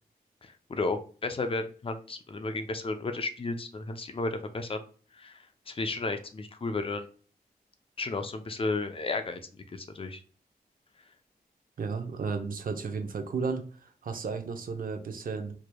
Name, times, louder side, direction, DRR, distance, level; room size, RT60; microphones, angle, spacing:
voice 1, 0.4-4.8 5.2-5.4 5.7-7.1 8.0-9.4 9.7-10.2, left 3 dB, 35° left, 7 dB, 0.5 m, -33 dB
voice 2, 11.8-15.5, right 5 dB, 60° right, 6 dB, 0.7 m, -33 dB
4.8 x 2.9 x 2.2 m, 0.42 s
wide cardioid pair, 120°, 16 cm